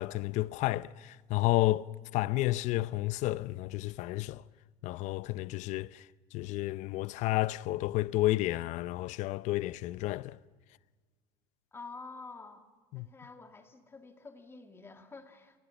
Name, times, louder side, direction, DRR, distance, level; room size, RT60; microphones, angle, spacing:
voice 1, 0.0-4.4 4.8-6.0 6.3-10.4 12.9-13.1, left 17 dB, 60° left, 0.6 m, -31 dB
voice 2, 11.7-12.7 12.9-15.6, left 3 dB, 20° left, 2.3 m, -48 dB
28.0 x 21.0 x 7.1 m
supercardioid pair, 120°, 14 cm